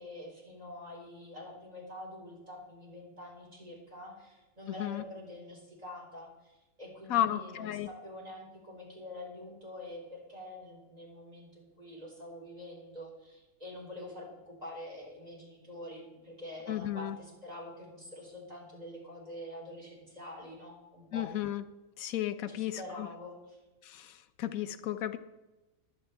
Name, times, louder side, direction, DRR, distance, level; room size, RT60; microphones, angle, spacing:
voice 1, 0.0-21.4 22.5-23.6, left 1 dB, 30° right, -2 dB, 4.3 m, -46 dB
voice 2, 4.7-5.0 7.1-7.9 16.7-17.2 21.1-21.6 22.0-23.1 23.8-25.2, left 12 dB, 85° left, 11 dB, 1.1 m, -33 dB
21.5 x 8.8 x 3.4 m, 1.1 s
omnidirectional pair, 1.4 m